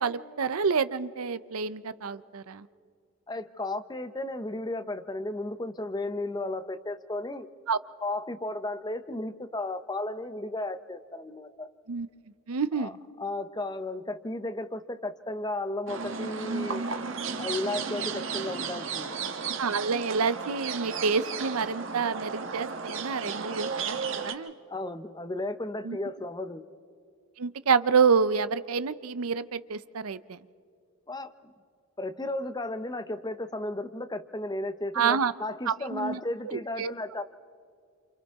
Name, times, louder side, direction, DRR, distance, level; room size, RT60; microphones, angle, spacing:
voice 1, 0.0-2.7 7.7-7.8 11.9-12.1 12.5-13.0 19.5-24.5 25.8-26.0 27.4-30.4 34.9-35.3 35.7-36.2 36.5-36.9, right 5 dB, 85° right, 14 dB, 0.6 m, -28 dB
voice 2, 3.3-7.5 8.0-11.7 12.8-16.8 17.4-19.2 24.7-26.6 31.1-31.3 32.0-37.2, left 2 dB, 20° left, 11 dB, 0.7 m, -34 dB
sound 1, 15.9-24.3, right 5 dB, 60° right, 1.4 m, -34 dB
29.0 x 28.0 x 3.6 m, 2.3 s
head